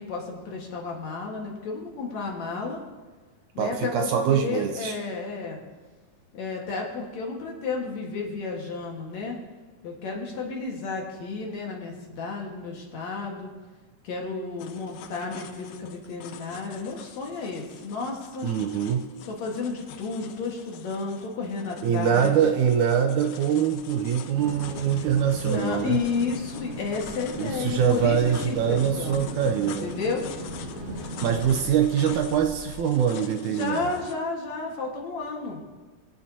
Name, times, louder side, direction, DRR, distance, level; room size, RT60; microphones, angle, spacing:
voice 1, 0.0-2.8 3.5-5.6 6.3-9.4 9.8-13.5 14.0-18.5 19.3-22.4 25.4-30.2 33.5-35.6, left 4 dB, 60° left, -1 dB, 2.6 m, -32 dB
voice 2, 3.6-5.0 18.4-19.0 21.8-26.0 27.4-29.9 31.2-33.9, right 8 dB, 75° right, 5 dB, 1.9 m, -24 dB
sound 1, 14.6-34.2, left 9 dB, 80° left, 2.2 m, -45 dB
sound 2, 23.6-32.8, right 1 dB, 50° right, 2.6 m, -46 dB
sound 3, 24.3-31.7, equal, 25° right, 2.5 m, -38 dB
23.0 x 8.7 x 2.7 m, 1.3 s
omnidirectional pair, 3.9 m